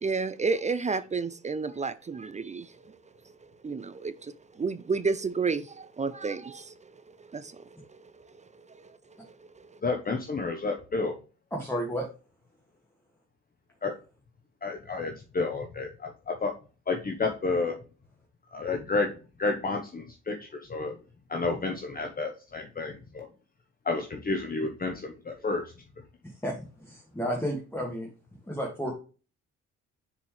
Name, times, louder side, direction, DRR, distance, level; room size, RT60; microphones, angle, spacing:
voice 1, 0.0-3.0 3.6-6.9 7.3-8.0 8.7-9.0 9.2-9.7, right 4 dB, 25° right, 0.4 m, -31 dB
voice 2, 9.8-11.1 13.8-13.9 14.6-16.5 16.9-17.8 18.5-19.1 19.4-21.0 21.3-23.3 23.8-25.7, left 3 dB, 30° left, 1.0 m, -30 dB
voice 3, 11.5-12.1 26.4-26.6 26.8-28.1 28.4-28.9, equal, 5° left, 1.8 m, -31 dB
6.8 x 4.6 x 3.1 m
cardioid pair, 90°, 30 cm